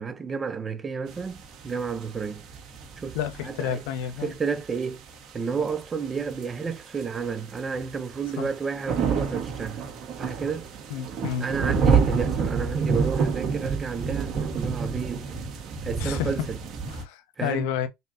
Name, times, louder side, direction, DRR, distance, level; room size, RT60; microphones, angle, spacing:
voice 1, 0.0-1.4 1.6-2.4 3.0-3.2 3.4-3.8 4.2-5.0 5.3-9.8 10.2-10.7 11.4-15.3 15.8-16.6 17.4-17.7, right 5 dB, 20° right, 0.5 m, -31 dB
sound 1, 1.1-17.0, right 5 dB, 45° right, 1.2 m, -29 dB
voice 2, 3.1-4.3 8.4-8.5 10.9-11.5 16.0-16.3 16.9-17.9, left 10 dB, 75° left, 0.8 m, -30 dB
5.3 x 2.2 x 2.6 m
supercardioid pair, 125°, 0 cm